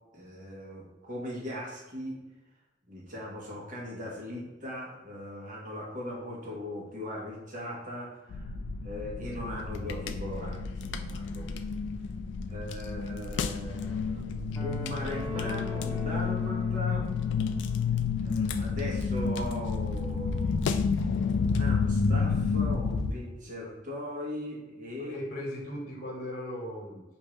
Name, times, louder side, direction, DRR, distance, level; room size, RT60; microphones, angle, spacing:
voice 1, 0.1-2.1 2.9-11.8 12.5-17.1 18.2-25.2, left 1 dB, 45° right, -4 dB, 1.3 m, -39 dB
sound 1, 8.3-23.1, left 5 dB, 65° left, 0.3 m, -30 dB
sound 2, 14.5-17.8, left 1 dB, 5° left, 1.1 m, -42 dB
voice 2, 25.0-27.0, left 1 dB, 40° left, -1 dB, 1.0 m, -37 dB
5.1 x 2.7 x 3.1 m, 1.1 s
head